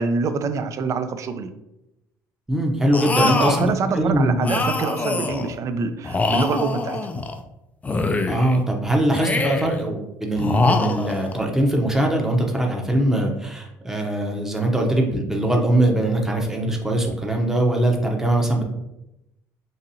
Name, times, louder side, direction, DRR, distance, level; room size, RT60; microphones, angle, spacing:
voice 1, 0.0-1.5 3.1-7.0, right 4 dB, 45° right, 10 dB, 0.4 m, -25 dB
voice 2, 2.5-4.6 8.3-18.6, right 1 dB, 5° right, 1 dB, 0.7 m, -22 dB
sound 1, 2.9-3.7 4.4-5.5 6.0-7.4 7.8-8.6 9.1-9.8 10.4-11.4, left 3 dB, 20° left, 0.4 m, -24 dB
4.0 x 2.6 x 2.7 m, 0.89 s
supercardioid pair, 85°, 7 cm